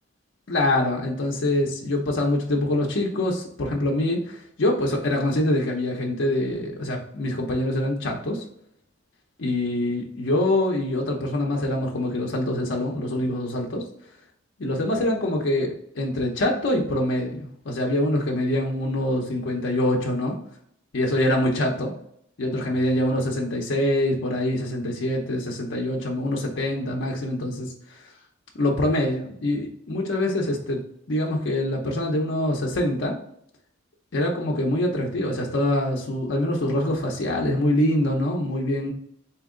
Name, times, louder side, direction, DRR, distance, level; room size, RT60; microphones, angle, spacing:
voice 1, 0.5-8.4 9.4-13.9 14.6-20.4 20.9-21.9 22.4-28.0 28.5-30.8 31.1-33.1 34.1-38.9, left 1 dB, 65° left, -1 dB, 0.6 m, -25 dB
3.6 x 2.8 x 3.7 m, 0.70 s
head